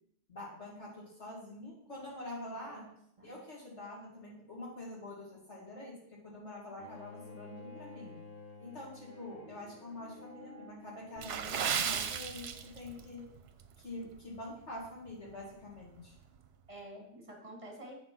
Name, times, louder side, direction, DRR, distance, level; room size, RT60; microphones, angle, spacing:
voice 1, 0.3-2.8 3.2-8.1 8.6-13.3 13.8-16.1, left 1 dB, 90° left, -5 dB, 2.9 m, -46 dB
voice 2, 2.5-3.3 16.7-18.0, right 1 dB, 30° right, 1 dB, 1.5 m, -50 dB
Bowed string instrument, 6.8-11.8, left 3 dB, 55° left, 1.2 m, -52 dB
Water / Splash splatter, 11.2-13.1 13.4-13.6 14.2-14.4 14.9-15.0, right 7 dB, 70° right, 0.9 m, -34 dB
7.8 x 3.8 x 6.0 m, 0.73 s
omnidirectional pair, 1.1 m